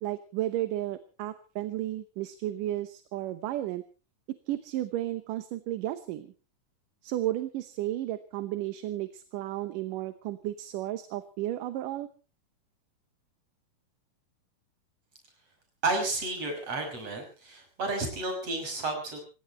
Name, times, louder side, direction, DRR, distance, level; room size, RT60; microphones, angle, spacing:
voice 1, 0.0-3.8 4.5-6.3 7.0-12.1, right 14 dB, 75° right, 11 dB, 2.6 m, -33 dB
voice 2, 15.8-19.2, right 2 dB, 45° right, 4 dB, 6.9 m, -31 dB
27.5 x 16.5 x 3.0 m, 0.33 s
omnidirectional pair, 3.9 m